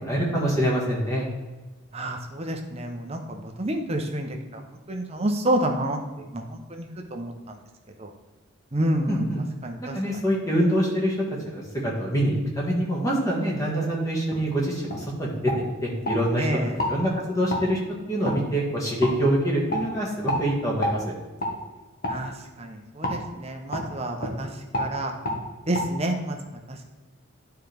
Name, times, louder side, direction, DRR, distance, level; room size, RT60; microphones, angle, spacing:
voice 1, 0.0-1.2 9.1-9.4 9.8-16.5 16.7-17.8 18.1-21.1, equal, 15° left, -3 dB, 1.6 m, -25 dB
voice 2, 1.9-7.3 8.0-8.1 8.7-9.3 9.6-9.9 16.4-16.7 22.1-22.3 22.6-24.5 24.8-25.1 25.7-26.4 26.7-26.8, right 1 dB, 30° right, 3 dB, 0.8 m, -29 dB
sound 1, 14.3-14.4 14.9-15.0 15.4-16.2 16.7-16.9 17.5-17.6 18.2-18.4 19.0-19.1 19.7-19.8 20.3-20.4 20.8-21.0 21.4-21.5 22.0-22.2 23.0-23.2 23.7-23.9 24.2-24.4 24.7-24.9 25.2-25.4 25.7-25.8, left 1 dB, 45° left, 1.4 m, -28 dB
10.5 x 4.6 x 3.4 m, 1.2 s
head